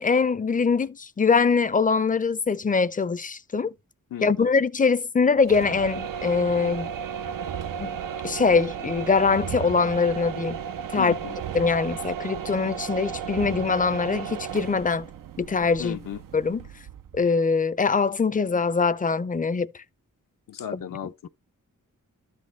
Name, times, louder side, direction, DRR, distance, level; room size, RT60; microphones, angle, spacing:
voice 1, 0.0-3.7 4.2-6.9 7.8-7.9 8.2-10.6 10.9-11.1 11.5-15.1 15.4-16.0 16.3-16.6 17.2-19.7 20.7-20.8, left 5 dB, 25° left, 0.5 m, -23 dB
voice 2, 4.1-4.5 11.0-11.4 15.8-16.2 20.5-21.3, left 10 dB, 80° left, 0.6 m, -35 dB
sound 1, 5.4-17.3, right 8 dB, 90° right, 0.6 m, -34 dB
12.0 x 4.1 x 3.2 m
cardioid pair, 70°, 32 cm